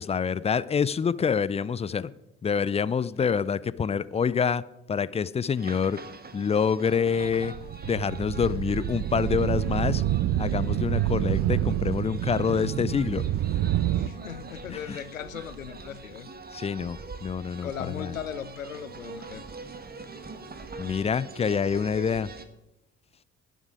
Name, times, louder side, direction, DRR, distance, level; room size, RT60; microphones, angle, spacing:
voice 1, 0.0-2.1 2.4-4.6 4.9-6.0 6.3-7.5 7.8-10.0 10.4-13.2 14.7-15.0 16.5-18.1 20.8-22.3, left 6 dB, 15° left, 0.4 m, -26 dB
voice 2, 2.8-3.3 13.9-16.3 17.6-19.4, left 9 dB, 90° left, 0.5 m, -38 dB
sound 1, 5.6-22.5, right 4 dB, 25° right, 1.3 m, -44 dB
sound 2, 7.2-14.1, right 13 dB, 45° right, 0.6 m, -27 dB
21.0 x 7.3 x 4.9 m
figure-of-eight pair, 50°, 39 cm